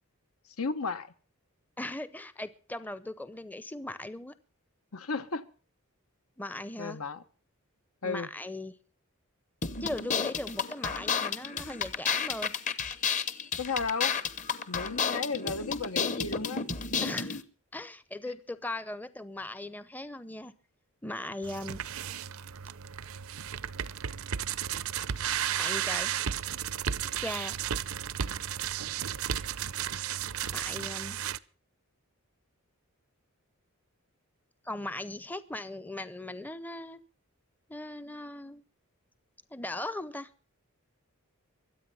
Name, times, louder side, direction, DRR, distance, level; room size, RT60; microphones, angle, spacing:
voice 1, 0.6-1.1 4.9-5.4 6.8-7.2 8.0-8.3 13.6-14.1 14.7-16.6, left 4 dB, 80° left, 11 dB, 1.2 m, -33 dB
voice 2, 1.8-4.3 6.4-7.0 8.0-8.7 9.8-12.5 17.0-17.4 17.7-20.5 21.0-21.8 25.6-26.1 27.2-27.6 30.5-31.2 34.6-37.0 37.7-38.6 39.5-40.3, left 1 dB, 10° left, 14 dB, 0.6 m, -38 dB
sound 1, 9.6-17.4, left 6 dB, 35° left, 1.0 m, -31 dB
sound 2, 21.4-31.4, right 9 dB, 70° right, 0.6 m, -34 dB
23.5 x 8.6 x 5.5 m, 0.39 s
head